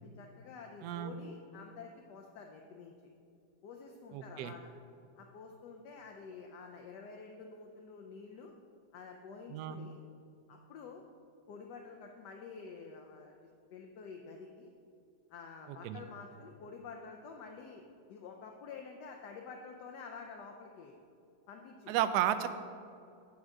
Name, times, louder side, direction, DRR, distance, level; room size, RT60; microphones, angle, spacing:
voice 1, 0.0-2.9 3.6-4.7 5.2-8.5 8.9-10.0 10.5-11.0 11.5-14.7 15.3-17.8 18.1-21.0 21.5-22.0, left 5 dB, 70° left, 2 dB, 1.1 m, -49 dB
voice 2, 0.8-1.1 4.1-4.5 9.5-9.8 15.7-16.0 21.9-22.5, right 11 dB, 75° right, 10 dB, 0.9 m, -33 dB
8.8 x 4.7 x 6.4 m, 2.5 s
omnidirectional pair, 2.1 m